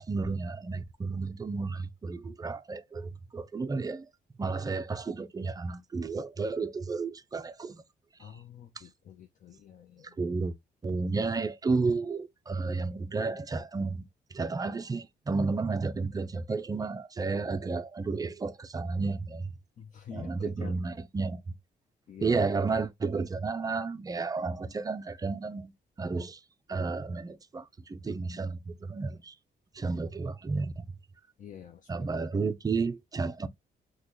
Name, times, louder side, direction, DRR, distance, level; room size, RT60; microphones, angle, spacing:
voice 1, 0.0-4.1 4.4-7.8 8.2-8.3 8.8-8.9 10.0-10.6 10.8-14.0 14.3-19.5 20.1-21.4 22.2-25.7 26.0-26.4 26.7-29.3 29.7-30.8 31.9-33.5, right 4 dB, 20° right, 0.4 m, -32 dB
voice 2, 8.2-10.2 19.8-20.8 22.1-22.4 31.4-32.3, left 8 dB, 50° left, 0.5 m, -47 dB
3.7 x 2.2 x 2.9 m
cardioid pair, 110°, 17 cm